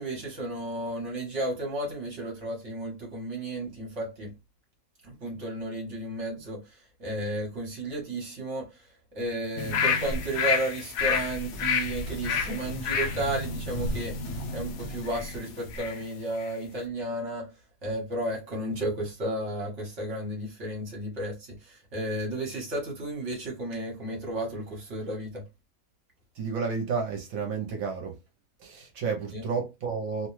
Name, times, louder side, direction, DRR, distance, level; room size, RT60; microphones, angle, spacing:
voice 1, 0.0-4.3 5.0-8.8 9.1-14.2 14.5-17.5 17.8-25.5 29.3-29.4, right 1 dB, 60° right, 1.3 m, -33 dB
sound 1, 9.6-16.0 16.4-16.5, left 5 dB, 80° left, 1.0 m, -30 dB
sound 2, 11.0-15.4, left 1 dB, 60° left, 1.3 m, -41 dB
voice 2, 26.3-28.2 28.6-30.3, right 5 dB, 75° right, 1.1 m, -31 dB
2.9 x 2.2 x 3.0 m
omnidirectional pair, 1.5 m